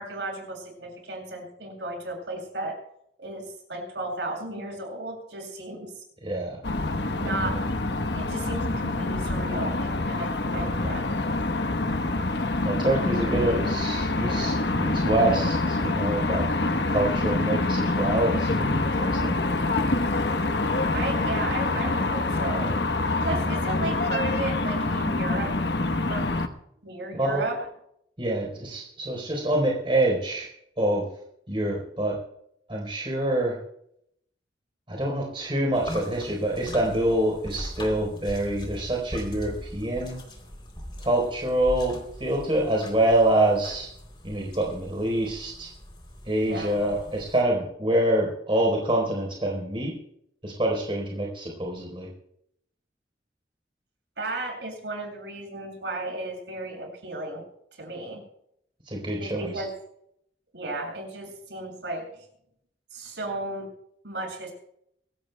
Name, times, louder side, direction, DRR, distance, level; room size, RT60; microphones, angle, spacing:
voice 1, 0.0-2.8 3.2-5.9 7.1-7.6 8.1-11.1 20.9-22.7 23.2-25.5 26.1-26.3 26.8-27.6 46.4-46.8 54.2-57.4 57.8-58.2 59.2-59.7 60.5-62.2 62.9-63.7 64.0-64.5, right 2 dB, 80° right, 0 dB, 7.0 m, -34 dB
voice 2, 6.2-6.6 7.3-7.5 12.6-16.5 16.9-19.4 27.1-27.5 28.2-30.5 30.8-31.1 31.5-32.2 32.7-33.6 34.9-40.2 41.0-43.9 44.2-45.7 46.3-49.9 50.4-52.1 58.9-59.5, right 1 dB, 30° right, -1 dB, 4.1 m, -26 dB
sound 1, 6.6-26.5, left 2 dB, 70° left, 1.1 m, -26 dB
sound 2, 35.7-47.4, equal, 25° left, 3.4 m, -41 dB
24.5 x 18.0 x 2.3 m, 0.73 s
head